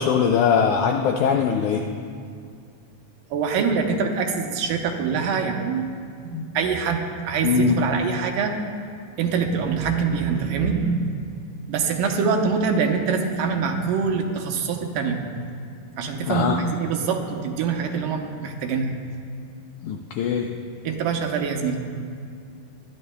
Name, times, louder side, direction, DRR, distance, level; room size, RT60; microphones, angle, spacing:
voice 1, 0.0-1.9 6.3-6.4 7.4-7.8 16.3-16.6 19.8-20.6, left 6 dB, 85° left, 3 dB, 1.7 m, -21 dB
voice 2, 3.3-5.9 6.2-8.6 9.2-11.2 11.7-15.5 16.0-18.9 20.8-22.0, right 5 dB, 75° right, 3 dB, 2.4 m, -24 dB
20.5 x 12.5 x 2.2 m, 2.2 s
omnidirectional pair, 4.0 m